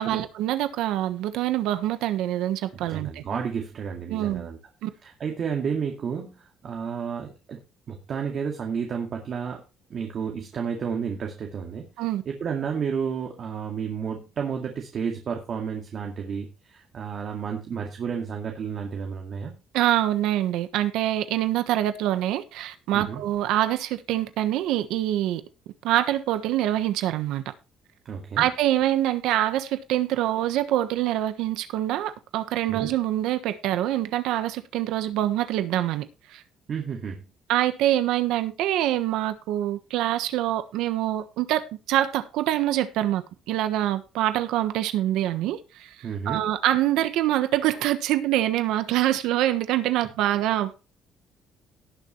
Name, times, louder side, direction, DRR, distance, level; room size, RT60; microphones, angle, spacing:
voice 1, 0.0-3.2 4.1-4.5 4.8-4.9 12.0-12.2 19.7-25.4 25.8-27.4 28.4-36.4 37.5-50.7, right 13 dB, 90° right, 1.2 m, -25 dB
voice 2, 2.7-4.6 5.0-7.6 7.9-9.6 9.9-11.8 12.3-19.5 22.9-23.2 28.1-28.5 32.7-32.9 36.7-37.2 46.0-46.4, right 6 dB, 40° right, 2.1 m, -31 dB
18.0 x 7.1 x 3.2 m
cardioid pair, 175°, 0 cm